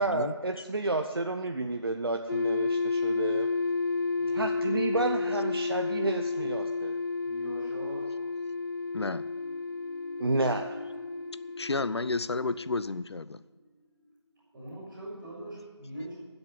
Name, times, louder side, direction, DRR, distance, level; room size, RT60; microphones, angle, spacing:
voice 1, 0.0-3.5 4.3-6.9 10.2-10.6, right 2 dB, 55° right, 4 dB, 0.7 m, -30 dB
sound 1, 2.3-13.0, left 4 dB, 45° left, 1.1 m, -31 dB
voice 2, 4.1-4.5 7.3-8.1 14.5-16.1, right 1 dB, 5° right, -20 dB, 4.2 m, -42 dB
sound 2, 8.8-15.0 15.4-15.5, equal, 30° left, 2.3 m, -50 dB
voice 3, 8.9-9.2 11.6-13.4, left 3 dB, 65° left, 16 dB, 0.5 m, -31 dB
12.5 x 8.0 x 7.8 m, 1.4 s
figure-of-eight pair, 175°, 15 cm